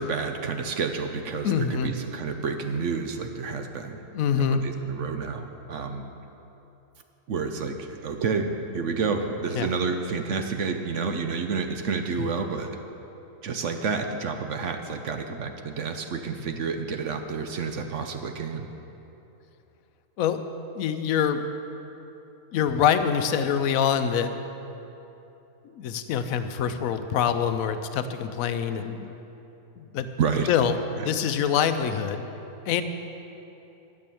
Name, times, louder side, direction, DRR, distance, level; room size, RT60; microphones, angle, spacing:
voice 1, 0.0-4.0 4.5-6.1 7.3-12.7 13.4-18.6 30.2-30.5 31.0-31.1, right 5 dB, 60° right, 6 dB, 0.9 m, -29 dB
voice 2, 1.4-1.9 4.1-4.6 9.6-9.7 12.2-12.3 20.2-20.4 20.8-21.4 22.5-24.3 25.7-29.1 29.8-30.1 30.5-32.3 32.7-32.8, left 8 dB, 70° left, 10 dB, 1.0 m, -25 dB
12.0 x 7.8 x 6.9 m, 3.0 s
omnidirectional pair, 1.6 m